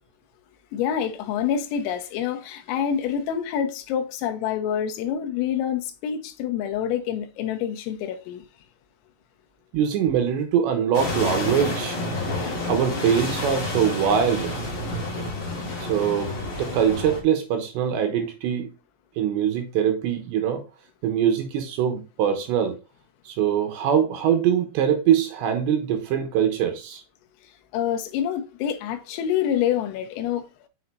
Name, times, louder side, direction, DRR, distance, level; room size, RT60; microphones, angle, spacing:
voice 1, 0.7-8.5 27.7-30.7, left 9 dB, 90° left, 3.6 m, -27 dB
voice 2, 9.7-12.0 12.7-14.6 15.8-16.3 16.6-18.7 19.2-20.6 21.0-22.7 23.3-27.0, right 8 dB, 75° right, 2.9 m, -23 dB
sound 1, 10.9-17.2, left 2 dB, 45° left, 1.7 m, -29 dB
7.1 x 6.4 x 2.8 m
omnidirectional pair, 5.9 m